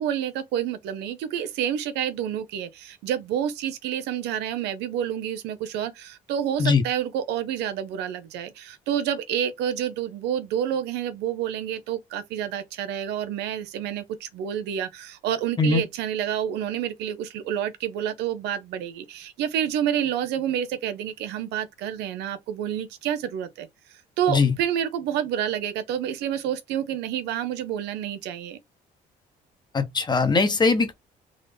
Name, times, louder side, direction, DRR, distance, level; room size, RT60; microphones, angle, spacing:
voice 1, 0.0-23.7 24.2-28.6, right 10 dB, 85° right, 0.8 m, -29 dB
voice 2, 29.7-30.9, left 4 dB, 25° left, 0.9 m, -20 dB
3.7 x 2.7 x 3.4 m
cardioid pair, 110°, 17 cm